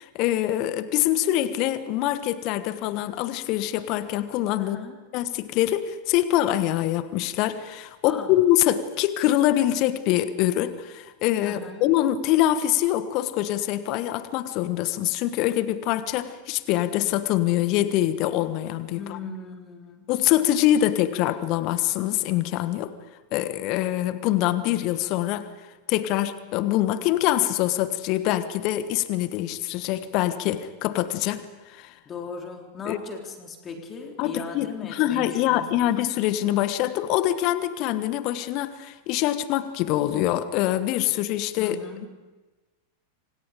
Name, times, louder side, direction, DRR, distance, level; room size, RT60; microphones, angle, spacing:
voice 1, 0.0-4.8 5.1-19.2 20.1-22.9 23.3-25.5 25.9-31.9 32.8-33.0 34.2-41.8, left 13 dB, 40° left, 13 dB, 1.3 m, -24 dB
voice 2, 4.6-5.0 8.1-8.3 11.4-11.9 18.9-20.1 32.1-36.0 41.6-42.1, left 4 dB, 25° left, 3 dB, 3.7 m, -38 dB
28.0 x 26.5 x 5.1 m, 1.2 s
figure-of-eight pair, 90°, 0 cm